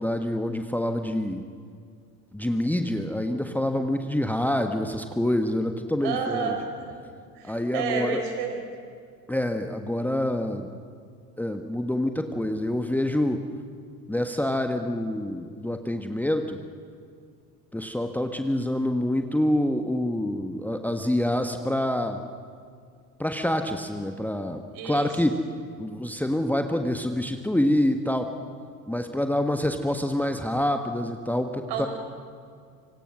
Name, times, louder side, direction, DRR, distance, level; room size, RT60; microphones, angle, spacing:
voice 1, 0.0-1.4 2.3-6.5 7.4-8.2 9.3-10.7 11.4-13.4 14.1-16.6 17.7-22.2 23.2-25.3 25.8-28.3 28.9-31.9, left 1 dB, 5° left, 6 dB, 1.4 m, -26 dB
voice 2, 6.0-7.0 7.3-8.6 24.7-25.1 31.7-31.9, right 5 dB, 55° right, 3 dB, 6.1 m, -30 dB
26.5 x 25.5 x 6.2 m, 2.2 s
figure-of-eight pair, 65°, 48 cm